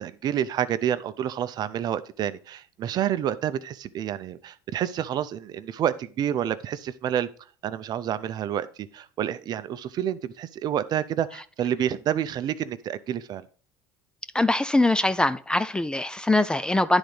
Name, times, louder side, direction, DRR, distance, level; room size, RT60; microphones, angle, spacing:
voice 1, 0.0-7.3 7.6-13.5, right 10 dB, 50° right, 0.6 m, -29 dB
voice 2, 14.3-17.0, left 2 dB, 10° left, 0.4 m, -22 dB
10.0 x 4.0 x 4.9 m
supercardioid pair, 85°, 9 cm